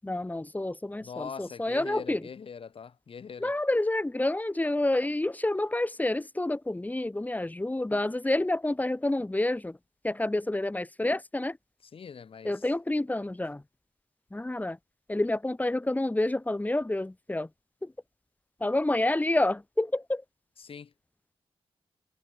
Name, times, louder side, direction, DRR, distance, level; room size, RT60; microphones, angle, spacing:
voice 1, 0.0-2.3 3.4-9.8 10.0-11.6 12.4-13.6 14.3-14.8 15.1-17.5 17.8-17.9 18.6-20.2, left 1 dB, 15° left, 6.0 m, -28 dB
voice 2, 1.0-3.5 11.9-12.5 20.6-20.9, left 6 dB, 60° left, 6.1 m, -42 dB
cardioid pair, 90°, 11 cm